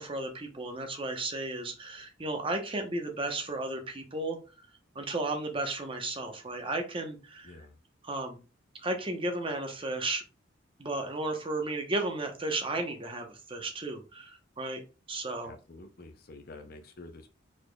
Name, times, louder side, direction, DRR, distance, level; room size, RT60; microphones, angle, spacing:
voice 1, 0.0-4.4 4.9-7.6 8.0-8.4 8.8-10.2 10.8-14.8 15.1-15.5, right 2 dB, 25° right, 4 dB, 0.9 m, -34 dB
voice 2, 7.4-7.7 15.4-17.3, left 2 dB, 50° left, 6 dB, 0.6 m, -48 dB
5.0 x 4.3 x 2.3 m, 0.32 s
head